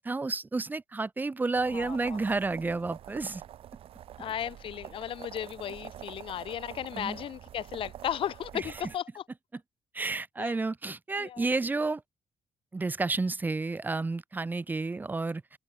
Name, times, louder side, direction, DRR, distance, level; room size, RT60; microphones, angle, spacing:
voice 1, 0.0-3.4 6.9-7.2 8.5-8.6 9.9-12.0 12.7-15.4, right 3 dB, 20° right, 2.7 m, -31 dB
sound 1, 1.5-8.9, right 11 dB, 70° right, 3.6 m, -46 dB
voice 2, 1.7-2.2 4.2-9.2 10.4-10.6 11.2-11.4, left 10 dB, 60° left, 1.8 m, -35 dB
open air
cardioid pair, 155°, 10 cm